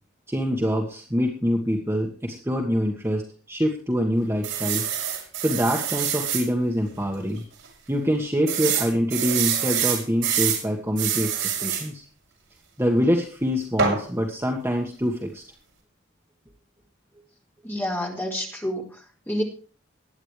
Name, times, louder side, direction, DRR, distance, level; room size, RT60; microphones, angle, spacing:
voice 1, 0.3-4.8 5.1-7.4 7.9-12.0 12.8-15.4, equal, 15° right, 0 dB, 1.7 m, -25 dB
sound 1, 4.4-6.5 7.0-7.1 7.4-7.5 8.5-10.6 11.0-11.9 13.8-14.0, right 8 dB, 75° right, 6.5 m, -25 dB
voice 2, 17.6-19.4, equal, 10° left, -2 dB, 4.3 m, -29 dB
21.0 x 9.9 x 3.3 m, 0.40 s
head